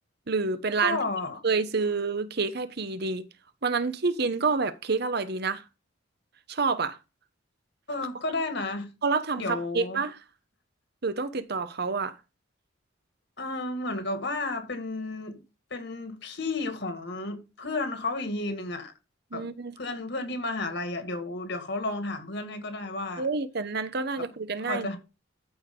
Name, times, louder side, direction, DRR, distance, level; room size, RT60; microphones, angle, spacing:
voice 1, 0.3-1.0 1.4-3.2 3.6-5.6 6.5-7.0 9.0-10.2 11.0-12.2 19.3-19.7 23.2-24.9, right 4 dB, 55° right, 1.0 m, -28 dB
voice 2, 0.8-1.4 7.9-8.9 9.4-10.0 13.4-15.4 15.7-18.9 19.3-19.5 19.8-23.3 24.2-24.3 24.6-25.0, left 2 dB, 60° left, 2.0 m, -32 dB
13.5 x 5.1 x 3.8 m
head